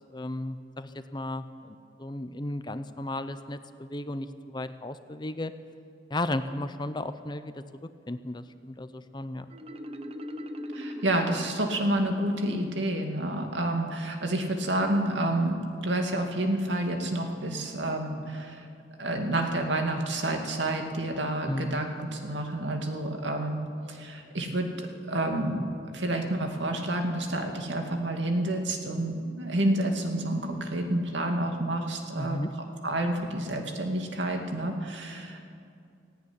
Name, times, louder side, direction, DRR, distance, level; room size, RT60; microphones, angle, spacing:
voice 1, 0.1-5.5 6.1-7.6 8.1-9.5 21.5-21.8 32.2-32.5, left 1 dB, 25° left, 11 dB, 0.7 m, -34 dB
Marimba xylophone, 9.5-12.3, equal, 30° right, 1.0 m, -40 dB
voice 2, 10.7-18.7 19.0-23.6 23.9-24.7 25.1-32.4 32.8-35.4, right 1 dB, 75° right, 3 dB, 2.5 m, -29 dB
17.5 x 16.0 x 9.9 m, 2.4 s
head